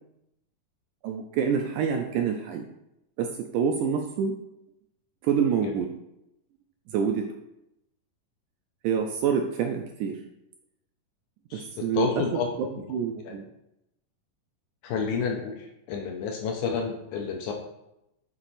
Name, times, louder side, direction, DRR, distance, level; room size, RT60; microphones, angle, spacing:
voice 1, 1.0-2.6 3.2-4.4 5.2-5.9 6.9-7.3 8.8-10.2 11.5-12.2 12.9-13.4, right 7 dB, 80° right, 3 dB, 1.8 m, -27 dB
voice 2, 11.5-12.5 12.8-12.9 13.2-13.4 14.8-17.5, left 5 dB, 80° left, 2 dB, 1.9 m, -30 dB
7.7 x 2.9 x 4.1 m, 0.85 s
omnidirectional pair, 3.9 m